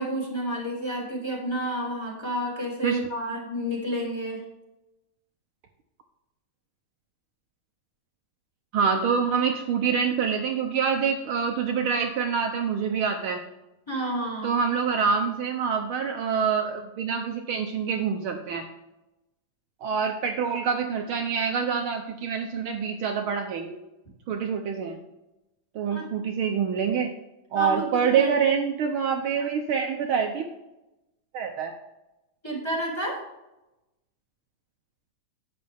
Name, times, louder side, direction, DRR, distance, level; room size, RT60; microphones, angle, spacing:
voice 1, 0.0-4.4 13.9-14.6 25.9-26.0 27.5-28.3 32.4-33.2, equal, 10° left, -1 dB, 2.3 m, -30 dB
voice 2, 8.7-13.4 14.4-18.7 19.8-23.8 24.3-25.0 25.7-27.1 27.5-30.4 31.3-31.7, right 6 dB, 85° right, 3 dB, 1.1 m, -26 dB
11.0 x 8.0 x 3.4 m, 0.96 s
omnidirectional pair, 3.3 m